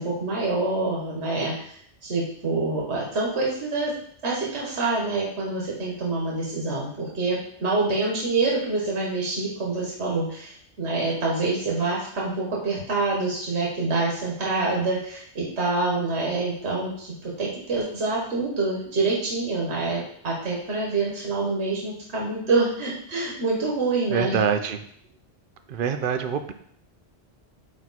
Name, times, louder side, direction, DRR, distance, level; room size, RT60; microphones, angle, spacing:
voice 1, 0.0-1.7 2.0-3.9 4.2-24.3, right 3 dB, 80° right, -4 dB, 1.6 m, -26 dB
voice 2, 24.1-24.8 25.7-26.5, right 7 dB, 60° right, 8 dB, 0.7 m, -25 dB
8.9 x 3.0 x 4.1 m, 0.64 s
omnidirectional pair, 1.1 m